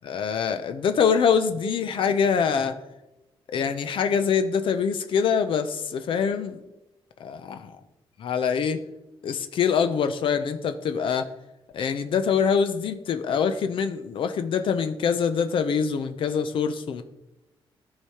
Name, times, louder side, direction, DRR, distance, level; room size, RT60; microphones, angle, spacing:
voice 1, 0.1-2.8 3.5-6.6 7.2-7.6 8.2-8.8 9.2-11.3 11.7-17.0, left 6 dB, 65° left, 9 dB, 0.5 m, -24 dB
14.0 x 4.8 x 2.9 m, 0.98 s
cardioid pair, 135°, 9 cm